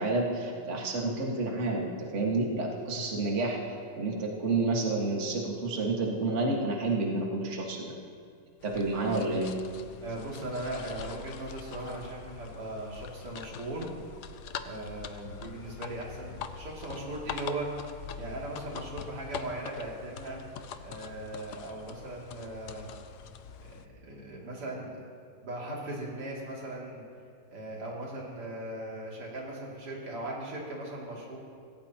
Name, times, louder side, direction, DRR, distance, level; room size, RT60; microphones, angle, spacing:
voice 1, 0.0-3.6 4.0-7.9 8.6-9.5, right 2 dB, 35° right, -1 dB, 1.9 m, -29 dB
sound 1, 8.6-23.9, left 7 dB, 70° left, 1.0 m, -44 dB
voice 2, 10.0-13.9 14.6-17.7 18.1-20.4 20.8-22.9 23.6-25.0 25.4-27.0 27.5-31.4, right 1 dB, 85° right, -3 dB, 3.7 m, -38 dB
25.5 x 17.0 x 3.0 m, 2.2 s
omnidirectional pair, 2.4 m